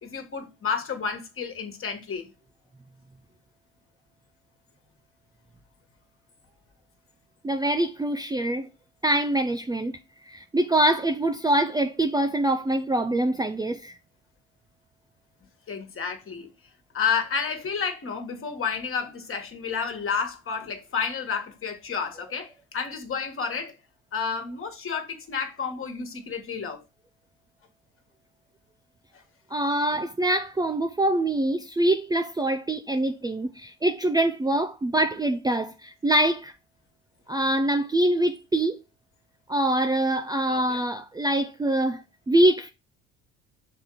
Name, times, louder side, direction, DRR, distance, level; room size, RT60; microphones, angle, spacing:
voice 1, 0.0-2.3 15.7-16.5 16.9-23.7 24.1-26.8 29.9-30.0 40.5-40.8, left 6 dB, 40° left, 1.7 m, -31 dB
voice 2, 7.4-8.7 9.0-10.0 10.3-14.0 29.5-36.5 37.3-38.8 39.5-42.0 42.3-42.7, right 1 dB, 10° right, 0.5 m, -24 dB
6.7 x 3.6 x 4.7 m
hypercardioid pair, 65°, 34 cm